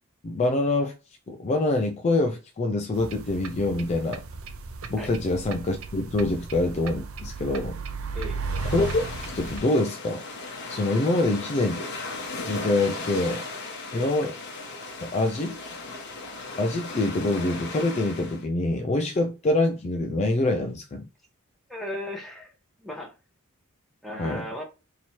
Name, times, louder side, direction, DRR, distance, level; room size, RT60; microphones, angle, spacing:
voice 1, 0.2-0.9 1.3-4.2 4.9-7.8 8.7-9.0 9.3-10.2 10.7-11.8 12.4-13.4 13.9-14.3 15.0-15.6 16.6-21.0 24.2-24.4, left 2 dB, 30° left, 0.3 m, -25 dB
sound 1, 2.9-9.6, right 4 dB, 70° right, 0.6 m, -35 dB
sound 2, 8.5-18.4, left 3 dB, 55° left, 1.0 m, -37 dB
voice 2, 21.7-22.5 22.8-23.1 24.0-24.6, left 1 dB, ahead, 0.9 m, -36 dB
3.1 x 2.8 x 4.4 m
head